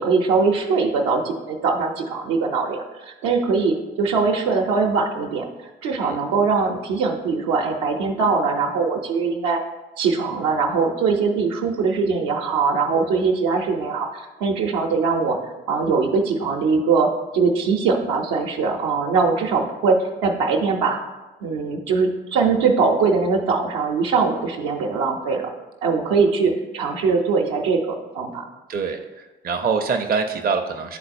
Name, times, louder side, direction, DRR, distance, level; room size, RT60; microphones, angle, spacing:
voice 1, 0.0-9.6 10.0-21.0 21.4-25.5 25.8-28.4, right 4 dB, 65° right, 1 dB, 0.8 m, -21 dB
voice 2, 28.7-31.0, right 5 dB, 30° right, 4 dB, 0.6 m, -25 dB
10.0 x 3.9 x 2.6 m, 1.1 s
figure-of-eight pair, 40°, 30 cm